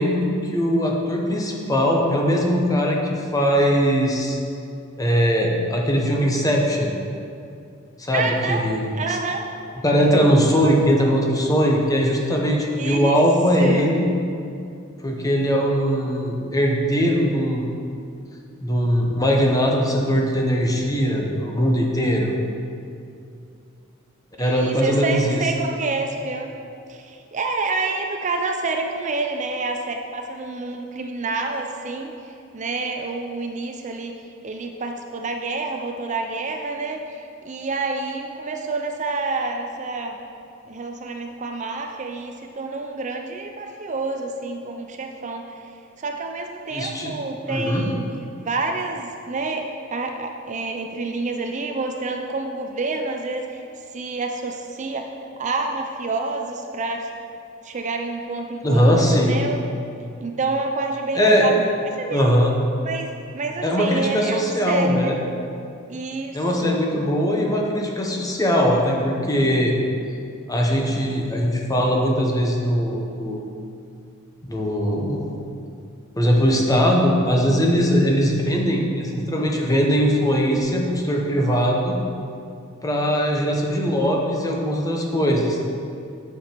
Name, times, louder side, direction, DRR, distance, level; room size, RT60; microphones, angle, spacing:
voice 1, 0.0-4.4 5.0-7.0 8.0-9.2 9.8-14.1 15.0-17.7 18.6-22.3 24.4-25.4 46.7-47.1 47.5-47.8 58.6-59.4 61.1-61.5 62.1-62.5 63.6-65.2 66.3-69.7 70.5-73.4 74.5-75.3 76.2-82.0 82.8-85.6, equal, 15° left, -1 dB, 1.0 m, -20 dB
voice 2, 8.1-8.7 8.9-9.5 12.8-13.2 13.6-13.9 24.4-26.5 26.9-34.1 34.4-40.2 40.7-45.5 46.0-48.1 48.4-53.6 53.9-55.1 55.4-57.1 57.6-59.6 60.2-61.6 61.8-62.3 62.8-65.1 65.9-66.7, right 3 dB, 35° right, 3 dB, 0.5 m, -28 dB
8.4 x 6.9 x 4.5 m, 2.5 s
head